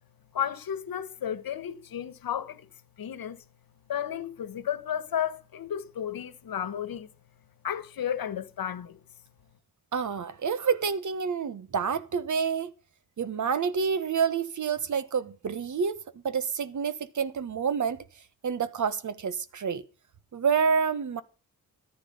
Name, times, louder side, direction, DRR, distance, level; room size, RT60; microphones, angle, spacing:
voice 1, 0.3-2.6 3.0-3.4 3.9-7.1 7.6-9.0, left 9 dB, 70° left, 1.4 m, -33 dB
voice 2, 9.9-12.7 13.2-18.0 18.4-19.9 20.3-21.2, right 6 dB, 55° right, 1.3 m, -28 dB
14.0 x 9.5 x 5.4 m
wide cardioid pair, 120°, 36 cm